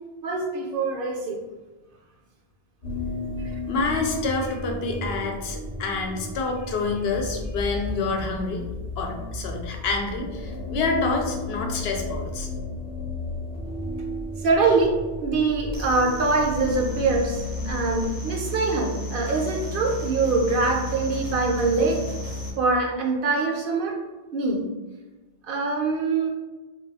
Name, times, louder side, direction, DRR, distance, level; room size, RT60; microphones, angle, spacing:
voice 1, 0.2-1.4 3.4-3.5 14.4-14.9 15.2-22.0 22.6-24.0 24.3-24.6 25.4-26.3, right 3 dB, 65° right, 0 dB, 0.7 m, -24 dB
sound 1, 2.8-18.1, left 1 dB, 45° left, 0.9 m, -34 dB
voice 2, 3.7-8.7 9.0-12.5, left 3 dB, 80° left, 2 dB, 0.8 m, -27 dB
sound 2, 15.7-22.5, equal, 30° right, 0.5 m, -33 dB
2.3 x 2.3 x 4.0 m, 1.2 s
omnidirectional pair, 1.0 m